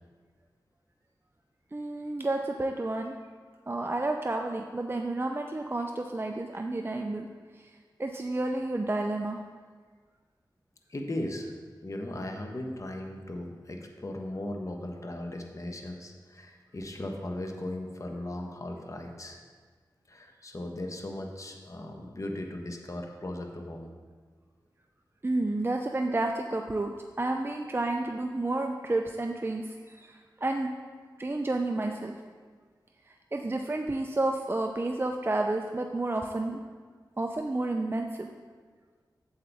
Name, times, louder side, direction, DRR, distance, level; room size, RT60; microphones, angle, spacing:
voice 1, 1.7-3.2 3.7-7.3 8.0-9.4 25.2-30.1 30.4-30.7 31.2-32.1 33.3-36.6 37.2-38.3, right 2 dB, 30° right, 3 dB, 0.5 m, -30 dB
voice 2, 10.9-11.5 11.8-19.4 20.1-23.9, left 1 dB, 45° left, 2 dB, 1.0 m, -37 dB
8.0 x 7.5 x 3.5 m, 1.5 s
cardioid pair, 50°, 8 cm